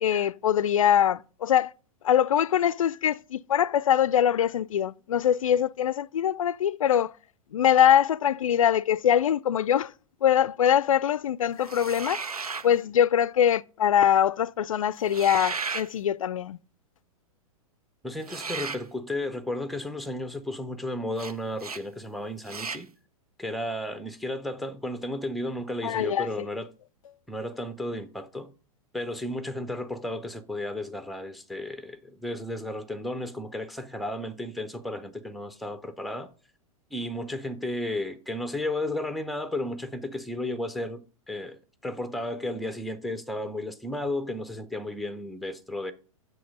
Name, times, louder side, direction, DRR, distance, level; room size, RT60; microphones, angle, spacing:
voice 1, 0.0-1.7 2.0-7.1 7.5-9.9 10.2-12.2 12.6-16.6 25.8-26.5, left 10 dB, 65° left, 0.4 m, -23 dB
sound 1, 11.6-12.7 15.0-15.9 18.2-18.8 21.2-21.3 21.6-21.8 22.5-22.8, right 5 dB, 85° right, 0.5 m, -34 dB
voice 2, 18.0-22.9 23.4-26.7 27.3-28.5 28.9-36.3 36.9-45.9, left 1 dB, ahead, 0.6 m, -33 dB
7.6 x 6.4 x 5.3 m
figure-of-eight pair, 100°, 19 cm